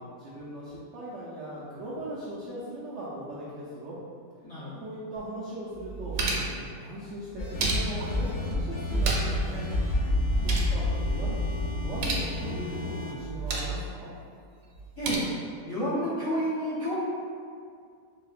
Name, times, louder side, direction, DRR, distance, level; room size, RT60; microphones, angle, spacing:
voice 1, 0.0-4.0 4.8-9.7 10.4-11.4 11.8-14.1, right 1 dB, 70° right, -8 dB, 0.6 m, -39 dB
voice 2, 4.4-4.8 15.0-15.3 15.7-17.0, equal, 55° left, -11 dB, 1.0 m, -30 dB
sound 1, 5.2-5.3 5.7-6.6 7.3-8.2 8.8-9.5 9.7-9.8 10.2-10.8 11.8-12.3 13.1-13.8 14.7-15.2, right 3 dB, 90° right, 1.2 m, -31 dB
sound 2, 7.4-13.1, left 1 dB, 80° left, 1.3 m, -29 dB
4.6 x 2.1 x 2.4 m, 2.3 s
omnidirectional pair, 1.8 m